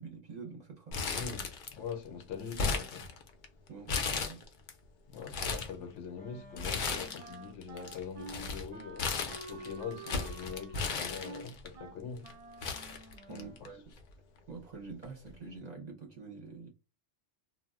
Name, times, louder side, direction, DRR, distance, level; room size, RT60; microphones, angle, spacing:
voice 1, 0.0-1.3 3.7-4.4 13.3-13.9 14.5-16.7, right 4 dB, 45° right, 0.7 m, -46 dB
Crumpling crinkling, 0.9-1.9 2.2-3.4 3.9-4.7 5.1-5.7 6.6-7.3 7.6-11.7 12.3-12.4 12.6-13.7 14.0-14.1 15.0-15.3, left 4 dB, 55° left, 0.6 m, -35 dB
voice 2, 1.1-1.4 1.7-3.0 5.1-12.3 13.3-13.7, left 6 dB, 80° left, 0.9 m, -43 dB
Wind instrument woodwind instrument, 6.1-13.7, right 3 dB, 70° right, 0.3 m, -49 dB
2.4 x 2.0 x 3.4 m
omnidirectional pair, 1.2 m